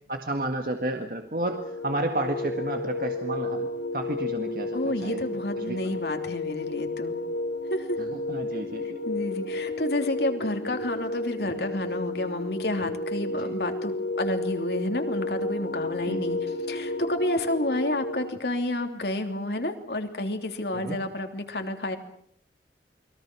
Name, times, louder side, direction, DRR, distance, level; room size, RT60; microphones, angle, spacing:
voice 1, 0.1-3.7 3.9-5.2 5.6-5.8 8.3-9.0 13.4-13.5 16.0-16.2 20.7-21.0, right 1 dB, 55° right, 4 dB, 1.9 m, -31 dB
sound 1, 1.4-18.3, left 2 dB, 90° left, 2.8 m, -32 dB
voice 2, 4.7-7.2 7.7-8.0 9.0-22.0, left 1 dB, 70° left, 5 dB, 3.2 m, -30 dB
29.5 x 22.0 x 6.2 m, 0.64 s
head